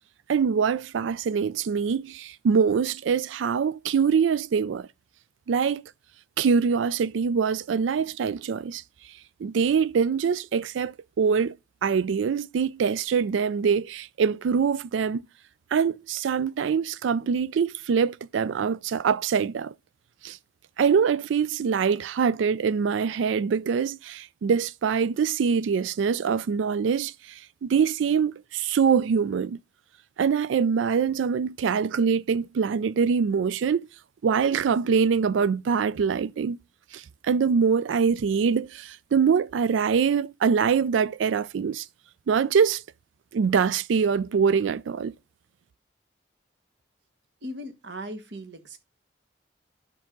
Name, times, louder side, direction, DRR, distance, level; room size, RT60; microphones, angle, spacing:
voice 1, 0.3-4.9 5.5-5.8 6.4-8.8 9.4-11.5 11.8-15.2 15.7-19.7 20.2-20.4 20.8-29.6 30.2-33.8 34.2-36.6 36.9-41.8 42.3-42.8 43.3-45.1, right 6 dB, 90° right, 0.4 m, -24 dB
voice 2, 47.4-48.8, equal, 65° right, 1.3 m, -38 dB
10.5 x 5.6 x 3.7 m
head